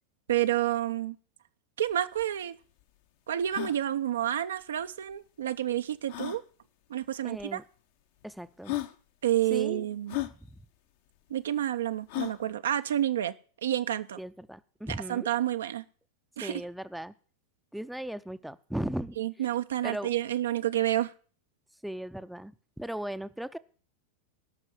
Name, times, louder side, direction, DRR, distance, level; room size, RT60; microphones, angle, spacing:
voice 1, 0.3-1.2 1.8-2.5 3.3-6.4 6.9-7.6 9.2-10.2 11.3-13.3 13.6-14.2 14.9-15.8 16.4-16.6 19.2-21.1, right 12 dB, 65° right, 11 dB, 0.6 m, -29 dB
sound 1, 1.9-2.0 2.2-2.3 2.8-2.9 3.4-3.8 5.1-5.2 6.1-6.4 7.4-7.5 8.2-8.3 8.6-8.9 10.1-10.3 12.1-12.4, left 17 dB, 50° left, 0.9 m, -34 dB
voice 2, 7.2-7.6 8.2-8.8 9.5-9.8 14.2-15.3 16.4-17.1 17.7-19.5 19.8-20.1 21.8-23.6, right 1 dB, ahead, 13 dB, 0.6 m, -37 dB
16.5 x 6.2 x 7.4 m, 0.42 s
figure-of-eight pair, 90°, 0 cm